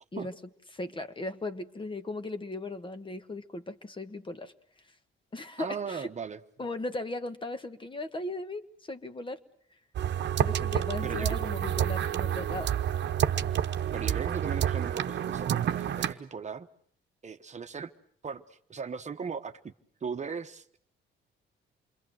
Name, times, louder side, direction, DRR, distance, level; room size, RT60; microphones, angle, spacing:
voice 1, 0.7-4.5 5.3-6.1 6.6-9.4 10.4-12.8, left 2 dB, 25° left, 9 dB, 1.5 m, -37 dB
voice 2, 5.6-6.4 11.0-11.4 13.9-16.7 17.2-17.9 18.2-19.7 20.0-20.8, right 6 dB, 35° right, 8 dB, 1.1 m, -38 dB
sound 1, 9.9-16.1, right 10 dB, 60° right, 1.0 m, -29 dB
28.0 x 22.5 x 7.9 m, 0.62 s
cardioid pair, 90°, 20 cm